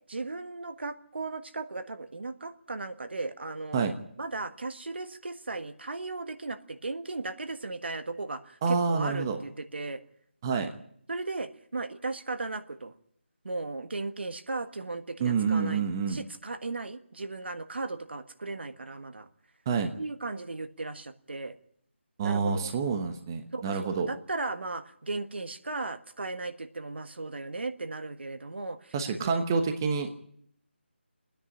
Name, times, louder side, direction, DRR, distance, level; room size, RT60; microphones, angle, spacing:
voice 1, 0.1-3.9 4.2-10.0 11.1-12.9 13.4-19.3 20.0-21.6 22.2-22.7 23.5-28.9 29.2-29.4, right 3 dB, 65° right, 10 dB, 1.5 m, -36 dB
voice 2, 8.6-9.4 10.4-10.7 15.2-16.2 19.7-19.9 22.2-24.1 28.9-30.2, right 5 dB, 20° right, 6 dB, 1.0 m, -28 dB
29.5 x 10.0 x 10.0 m, 0.67 s
figure-of-eight pair, 170°, 6 cm